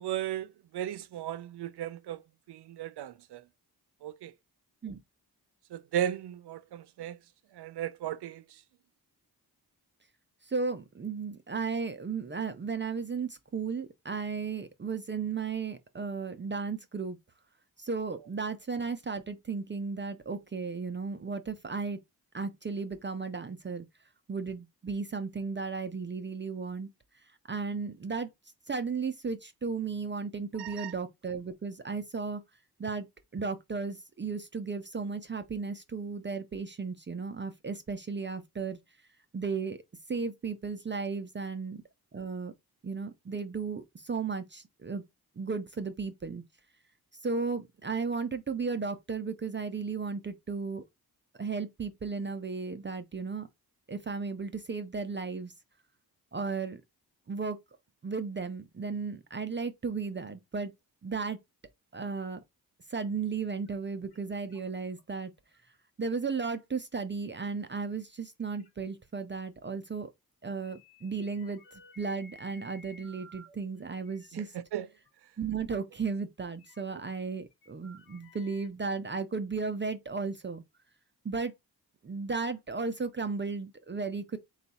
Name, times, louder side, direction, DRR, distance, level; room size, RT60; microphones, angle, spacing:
voice 1, 0.0-2.2 2.5-3.4 4.0-4.3 5.7-7.2 7.5-8.6 30.6-30.9 74.3-74.9, right 11 dB, 90° right, 0.5 m, -36 dB
voice 2, 10.4-17.2 17.8-22.0 22.3-23.9 24.3-26.9 27.5-28.3 28.7-32.4 32.8-33.1 33.3-38.8 39.3-39.8 40.1-41.8 42.1-42.5 42.8-45.0 45.4-46.4 47.2-50.9 51.4-53.5 53.9-55.5 56.3-56.8 57.3-57.6 58.0-60.7 61.0-61.4 61.9-62.4 62.9-65.3 66.0-70.1 70.4-74.5 75.4-80.6 81.2-81.5 82.0-84.4, right 4 dB, 30° right, 0.5 m, -35 dB
sound 1, 63.7-63.8 64.1-64.2 64.5-65.0 65.5-65.8 66.2-66.3 67.9-68.0 68.4-68.7 69.1-69.2 70.6-73.5 74.0-74.3 75.1-75.2 75.4-75.5 76.6-77.0 77.5-78.7, left 1 dB, 80° left, 1.2 m, -56 dB
4.0 x 2.3 x 4.0 m
wide cardioid pair, 90°, 39 cm